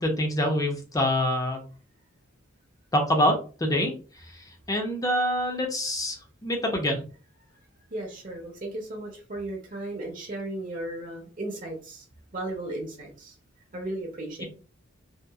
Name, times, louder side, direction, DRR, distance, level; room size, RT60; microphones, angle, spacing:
voice 1, 0.0-1.6 2.9-3.9 4.7-6.2 6.4-7.0 14.4-14.5, left 1 dB, 15° left, 2 dB, 0.5 m, -25 dB
voice 2, 7.9-12.0 12.3-13.3 13.7-14.4, right 1 dB, 40° right, 0 dB, 0.6 m, -35 dB
2.8 x 2.3 x 2.3 m, 0.37 s
head